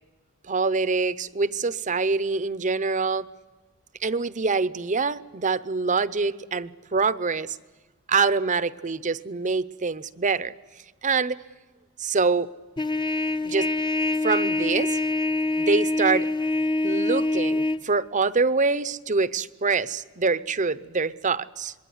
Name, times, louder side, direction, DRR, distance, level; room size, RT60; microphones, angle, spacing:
voice 1, 0.5-3.3 4.0-7.6 8.1-10.5 11.0-11.4 12.0-12.5 13.4-13.7 14.2-15.0 15.6-16.3 16.8-21.7, right 4 dB, 35° right, 0.8 m, -25 dB
Trumpet, 12.8-17.8, left 2 dB, 20° left, 0.8 m, -25 dB
26.5 x 22.0 x 9.7 m
head